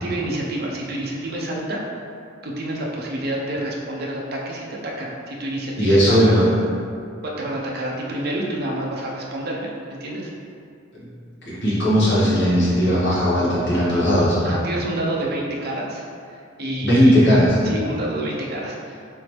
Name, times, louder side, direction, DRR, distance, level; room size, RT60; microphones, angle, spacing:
voice 1, 0.0-1.9 2.4-6.4 7.2-10.3 14.4-17.2 17.6-19.0, right 1 dB, 55° right, -3 dB, 0.6 m, -28 dB
voice 2, 5.8-6.4 11.4-14.4 16.8-17.6, equal, 60° left, -9 dB, 1.2 m, -17 dB
3.8 x 3.4 x 3.0 m, 2.4 s
head